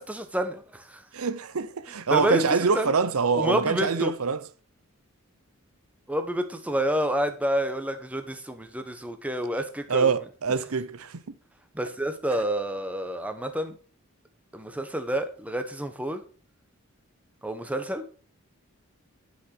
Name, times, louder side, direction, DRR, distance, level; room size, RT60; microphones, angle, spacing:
voice 1, 0.0-1.0 2.1-2.4 2.7-2.9 3.3-4.1 6.1-10.1 11.7-13.8 14.5-16.2 17.4-18.0, right 1 dB, 5° right, 1.2 m, -29 dB
voice 2, 1.1-4.4 9.9-11.2, right 5 dB, 80° right, 0.7 m, -25 dB
11.0 x 6.3 x 6.0 m
head